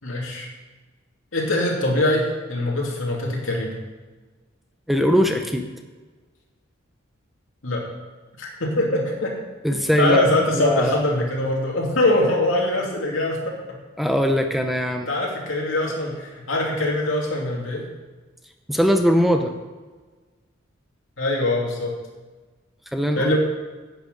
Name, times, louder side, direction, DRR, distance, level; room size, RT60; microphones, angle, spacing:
voice 1, 0.0-0.5 1.3-3.8 7.6-7.9 8.4-9.3 10.0-13.6 15.1-17.9 21.2-21.9 23.2-23.4, left 1 dB, 70° left, -2 dB, 2.7 m, -23 dB
voice 2, 4.9-5.7 9.6-10.2 10.5-11.1 14.0-15.1 18.7-19.5 22.9-23.4, equal, ahead, 5 dB, 0.6 m, -20 dB
10.5 x 8.9 x 5.3 m, 1.3 s
head